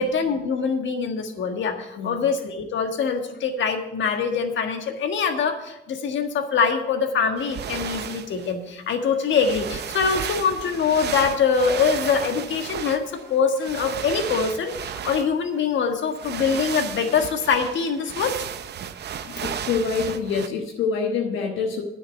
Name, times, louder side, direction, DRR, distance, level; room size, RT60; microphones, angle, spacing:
voice 1, 0.0-18.3, left 6 dB, 70° left, 5 dB, 1.6 m, -24 dB
sound 1, 7.4-8.5 9.2-15.6 16.1-20.5, right 8 dB, 55° right, 0.7 m, -34 dB
voice 2, 19.1-21.8, left 5 dB, 85° left, 1 dB, 1.2 m, -26 dB
9.8 x 6.3 x 8.0 m, 0.89 s
cardioid pair, 90°, 20 cm